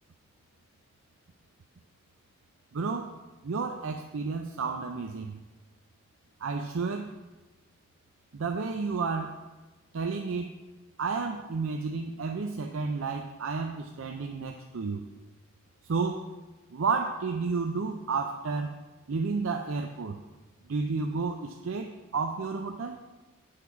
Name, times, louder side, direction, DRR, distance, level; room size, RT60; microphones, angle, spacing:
voice 1, 2.7-3.1 3.4-5.4 6.4-7.1 8.3-9.4 9.9-10.5 11.0-15.0 15.9-16.3 16.7-18.7 19.1-20.2 20.7-23.0, right 4 dB, 75° right, 4 dB, 0.5 m, -31 dB
8.9 x 4.7 x 5.8 m, 1.2 s
head